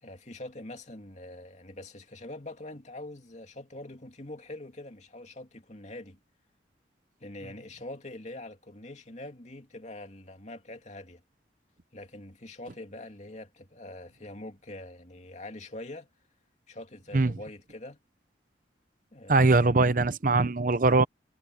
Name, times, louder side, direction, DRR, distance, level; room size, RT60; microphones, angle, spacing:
voice 1, 0.0-6.2 7.2-11.2 11.9-16.1 16.7-18.0 19.1-20.0, left 1 dB, 40° left, 2.7 m, -44 dB
voice 2, 19.3-21.0, right 3 dB, 45° right, 0.7 m, -21 dB
head